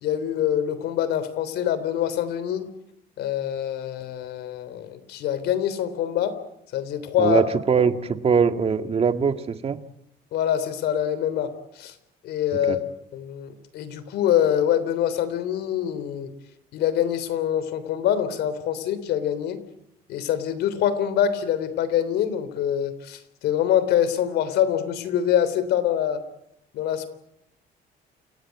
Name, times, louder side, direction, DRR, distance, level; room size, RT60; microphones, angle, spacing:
voice 1, 0.0-2.7 3.2-6.4 6.7-7.4 7.8-7.9 10.3-11.9 12.2-12.9 13.1-16.3 16.7-19.6 20.1-26.2 26.7-27.1, left 10 dB, 75° left, 13 dB, 3.4 m, -25 dB
voice 2, 7.2-9.8 12.7-12.8, right 6 dB, 35° right, 9 dB, 1.9 m, -22 dB
28.5 x 17.0 x 9.5 m, 0.80 s
cardioid pair, 110°, 17 cm